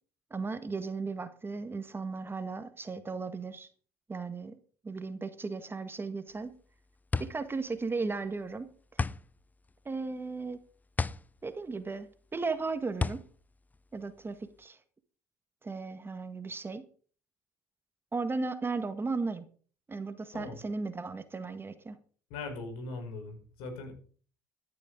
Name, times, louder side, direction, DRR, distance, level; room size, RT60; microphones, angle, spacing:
voice 1, 0.3-3.7 4.1-4.6 4.8-6.5 7.2-8.7 9.0-9.1 9.8-10.6 11.4-13.2 13.9-14.8 15.6-16.8 18.1-19.4 19.9-22.0, right 4 dB, 25° right, 10 dB, 1.7 m, -36 dB
sound 1, 6.3-14.6, left 3 dB, 15° left, 0.6 m, -36 dB
voice 2, 22.3-23.9, left 3 dB, 70° left, 5 dB, 5.1 m, -40 dB
13.5 x 11.0 x 5.1 m, 0.43 s
hypercardioid pair, 65°, 10 cm